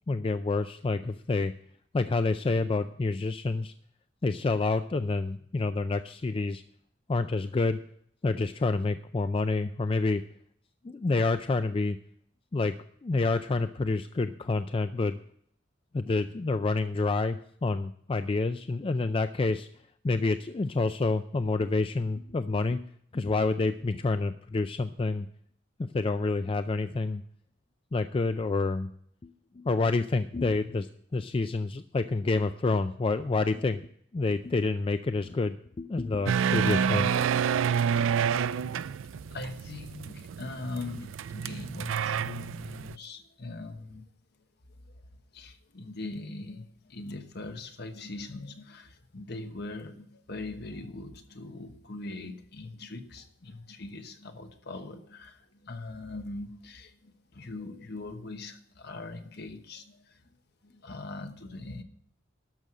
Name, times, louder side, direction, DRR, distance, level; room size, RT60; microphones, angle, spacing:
voice 1, 0.1-1.5 1.9-3.7 4.2-6.6 7.1-7.8 8.2-10.2 10.8-12.0 12.5-12.8 13.0-15.2 15.9-19.7 20.0-22.8 23.1-25.3 25.8-27.2 27.9-28.9 29.2-29.3 29.6-30.9 31.1-33.9 34.1-37.2, left 3 dB, 30° left, 10 dB, 0.4 m, -28 dB
sound 1, 36.3-43.0, right 7 dB, 90° right, 0.4 m, -28 dB
voice 2, 38.7-44.0 44.8-45.0 45.3-60.2 60.6-61.8, left 2 dB, 60° left, 7 dB, 1.2 m, -41 dB
12.0 x 6.3 x 7.5 m, 0.64 s
head